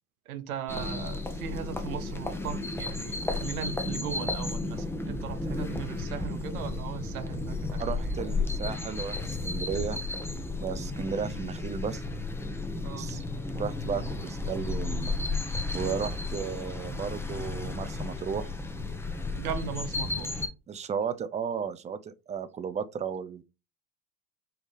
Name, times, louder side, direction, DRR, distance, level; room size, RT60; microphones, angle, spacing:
voice 1, 0.3-8.1 12.8-13.1 19.4-20.5, right 8 dB, 85° right, 0.7 m, -38 dB
sound 1, 0.7-20.5, left 3 dB, 5° left, 0.8 m, -33 dB
voice 2, 7.8-10.0 10.6-12.0 13.0-13.2 13.5-15.1 15.7-18.5 20.7-23.4, right 7 dB, 15° right, 0.4 m, -34 dB
4.6 x 3.3 x 3.1 m
hypercardioid pair, 70°, 42 cm